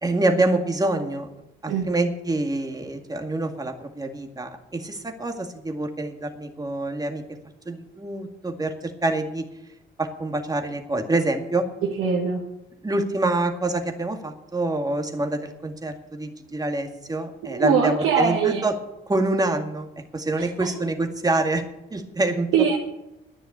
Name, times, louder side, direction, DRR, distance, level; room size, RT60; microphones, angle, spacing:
voice 1, 0.0-1.3 1.6-7.2 7.7-9.5 10.0-11.7 12.8-18.8 19.1-21.6 21.9-22.5, right 2 dB, 20° right, 5 dB, 2.0 m, -26 dB
voice 2, 1.7-2.0 12.0-12.4 17.4-18.7 20.6-20.7 22.5-22.8, right 6 dB, 85° right, -2 dB, 1.8 m, -22 dB
10.5 x 10.0 x 8.6 m, 0.90 s
cardioid pair, 90°, 20 cm